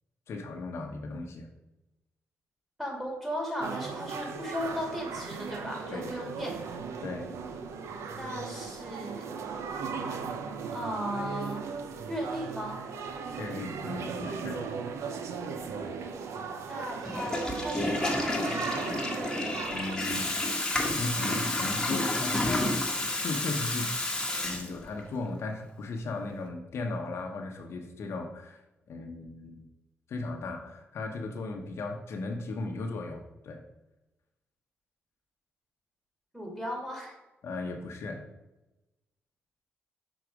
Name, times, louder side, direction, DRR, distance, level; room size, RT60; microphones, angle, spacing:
voice 1, 0.3-1.5 5.9-6.1 7.0-7.3 13.4-14.6 19.6-20.4 20.8-24.1 24.4-28.6 28.9-29.7 30.1-33.7 37.4-38.2, left 3 dB, 65° left, 3 dB, 0.8 m, -36 dB
voice 2, 2.8-6.6 8.1-9.5 10.7-11.7 12.1-12.8 16.7-18.9 36.3-37.2, equal, 5° right, -1 dB, 2.3 m, -36 dB
sound 1, 3.6-20.0, right 5 dB, 80° right, 0.6 m, -37 dB
Water tap faucet / Toilet flush, 17.0-25.1, left 2 dB, 15° left, 1.3 m, -30 dB
6.1 x 4.0 x 4.7 m, 1.0 s
cardioid pair, 90°, 5 cm